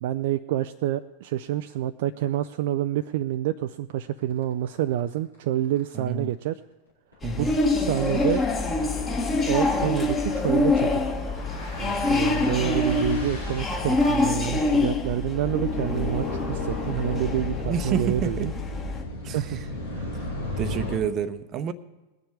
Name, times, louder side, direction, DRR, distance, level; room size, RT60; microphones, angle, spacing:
voice 1, 0.0-6.6 7.4-7.5 7.7-8.5 9.5-11.0 11.8-18.5 19.3-19.6 19.9-20.2, right 12 dB, 50° right, 10 dB, 0.4 m, -28 dB
sound 1, 4.3-4.4 4.8-4.9 5.2-5.3 5.6-5.8 7.1-21.0, left 1 dB, 85° left, 4.5 m, -36 dB
voice 2, 5.9-6.3 7.2-7.6 17.6-18.5 19.2-19.6 20.6-21.7, right 7 dB, 30° right, 13 dB, 0.7 m, -29 dB
sound 2, 7.2-19.0, left 3 dB, 20° left, 1.7 m, -26 dB
20.5 x 7.2 x 4.7 m, 1.1 s
figure-of-eight pair, 90°, 0 cm